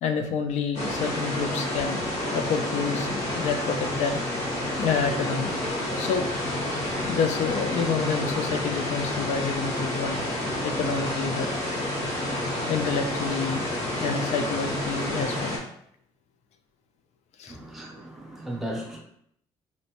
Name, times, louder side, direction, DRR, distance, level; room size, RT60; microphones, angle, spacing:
voice 1, 0.0-4.2 4.8-5.5 6.0-6.3 7.1-10.2 10.6-11.5 12.7-13.6 14.0-15.6 17.4-17.6, left 5 dB, 75° left, 6 dB, 0.4 m, -28 dB
sound 1, 0.7-15.6, left 1 dB, 90° left, 1.2 m, -29 dB
voice 2, 17.5-19.0, right 1 dB, ahead, -2 dB, 0.6 m, -36 dB
4.1 x 2.1 x 2.8 m, 0.67 s
cardioid pair, 175°, 12 cm